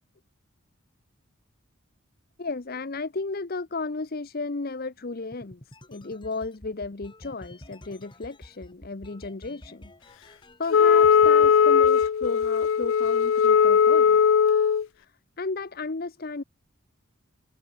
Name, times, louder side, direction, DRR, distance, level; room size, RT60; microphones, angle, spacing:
voice 1, 2.4-5.6 5.9-14.2 15.0-16.4, left 3 dB, 45° left, 0.8 m, -34 dB
sound 1, 5.3-10.7 11.0-11.5 11.8-13.3, left 1 dB, 25° left, 3.0 m, -48 dB
Wind instrument woodwind instrument, 10.7-14.8, left 7 dB, 65° left, 0.4 m, -19 dB
head